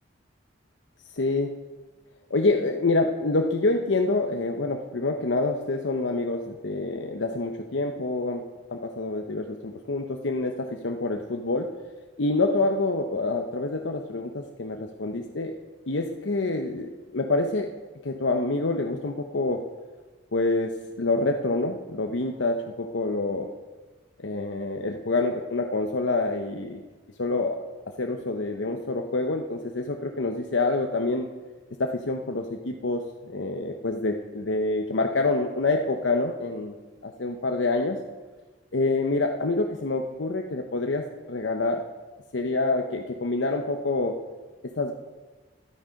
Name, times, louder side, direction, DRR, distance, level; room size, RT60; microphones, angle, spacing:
voice 1, 1.1-1.6 2.3-8.4 8.7-11.7 12.2-15.5 15.9-17.7 18.0-19.6 20.3-23.5 24.2-26.8 27.2-27.6 28.0-31.3 31.8-36.7 37.0-38.0 38.7-41.8 42.3-44.2 44.8-44.9, left 2 dB, 85° left, 3 dB, 0.8 m, -27 dB
12.5 x 12.5 x 5.2 m, 1.3 s
head